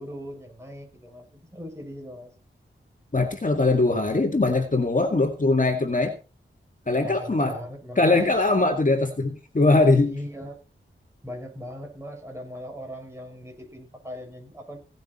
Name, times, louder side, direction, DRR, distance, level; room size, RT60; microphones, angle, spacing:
voice 1, 0.0-2.3 7.0-8.2 10.0-10.6 11.2-14.8, equal, 10° right, 1 dB, 6.7 m, -39 dB
voice 2, 3.1-6.1 6.9-7.6 8.0-10.2, left 2 dB, 40° left, 4 dB, 2.0 m, -21 dB
17.5 x 9.1 x 4.3 m, 0.33 s
wide cardioid pair, 60°, 21 cm